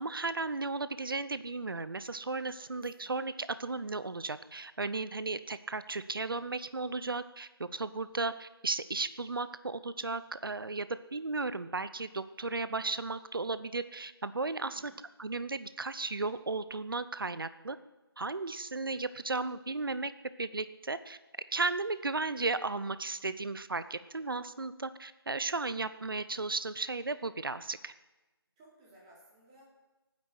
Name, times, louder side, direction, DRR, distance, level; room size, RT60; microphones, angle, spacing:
voice 1, 0.0-14.9 15.2-17.8 18.2-20.1 20.4-21.2 21.5-27.9, right 3 dB, 60° right, 14 dB, 0.8 m, -35 dB
voice 2, 2.6-3.1 14.6-15.0 28.6-29.6, right 1 dB, 15° right, -5 dB, 3.6 m, -59 dB
17.5 x 9.7 x 8.1 m, 1.1 s
figure-of-eight pair, 160°, 13 cm